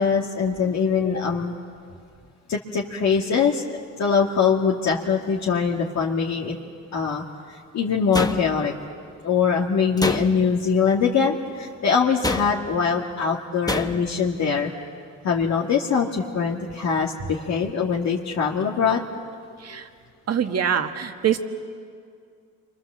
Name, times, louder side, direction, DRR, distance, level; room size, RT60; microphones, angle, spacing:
voice 1, 0.0-1.5 2.5-3.6 4.0-6.6 6.9-8.7 9.2-14.7 15.2-19.0 19.7-19.8, left 6 dB, 65° left, -2 dB, 2.2 m, -23 dB
sound 1, 8.1-8.9 10.0-10.7 12.2-12.8 13.7-14.2, left 2 dB, 10° left, 1.3 m, -28 dB
voice 2, 19.6-19.9 20.3-21.4, right 8 dB, 55° right, 6 dB, 1.8 m, -24 dB
29.5 x 24.5 x 7.6 m, 2.2 s
cardioid pair, 90°, 30 cm